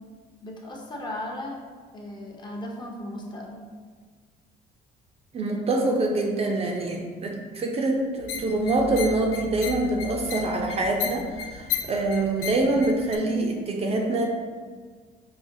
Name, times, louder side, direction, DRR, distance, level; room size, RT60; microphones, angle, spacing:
voice 1, 0.4-1.6 1.9-3.6, left 1 dB, 25° left, -1 dB, 0.6 m, -36 dB
voice 2, 5.3-14.3, right 2 dB, 35° right, 1 dB, 0.5 m, -25 dB
sound 1, 8.2-13.2, left 8 dB, 80° left, 0.4 m, -34 dB
4.8 x 2.2 x 2.6 m, 1.6 s
cardioid pair, 110°, 17 cm